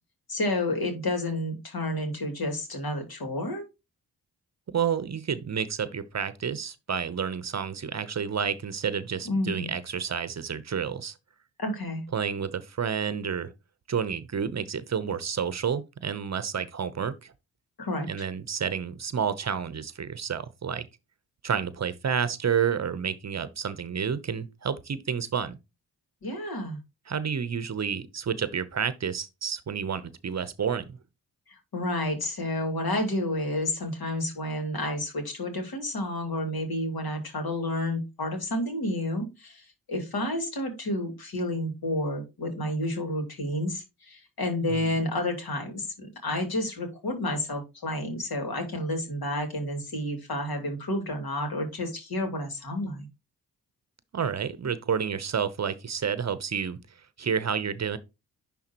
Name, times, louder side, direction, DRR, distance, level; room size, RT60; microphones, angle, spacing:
voice 1, 0.3-3.6 9.2-9.7 11.6-12.0 17.8-18.1 26.2-26.8 31.5-53.1, left 1 dB, 60° left, 2.6 m, -30 dB
voice 2, 4.7-11.1 12.1-13.5 13.9-17.3 18.1-20.8 21.4-25.6 27.1-30.8 44.7-45.0 54.1-56.8 57.2-58.0, right 7 dB, 40° right, 0.8 m, -30 dB
10.5 x 3.6 x 2.9 m
supercardioid pair, 40°, 40 cm